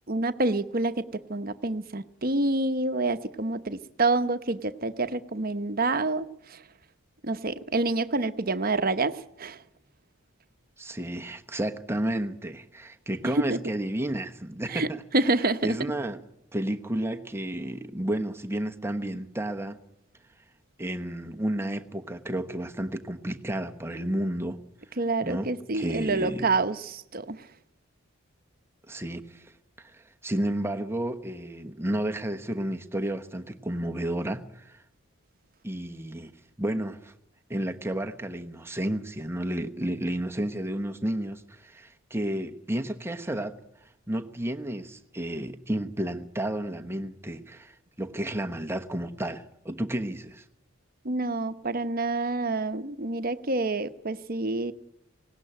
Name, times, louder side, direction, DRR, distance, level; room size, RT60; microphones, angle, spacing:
voice 1, 0.1-6.6 7.2-9.6 13.3-13.6 14.7-14.9 15.1-15.7 25.0-27.5 51.0-54.7, right 2 dB, 45° right, 1.0 m, -27 dB
voice 2, 10.8-15.0 15.6-16.2 16.5-19.8 20.8-24.6 25.2-26.5 28.9-29.5 29.8-34.8 35.6-36.3 36.6-37.1 37.5-43.6 44.1-50.4, right 1 dB, 10° right, 1.0 m, -31 dB
19.0 x 17.5 x 8.9 m
head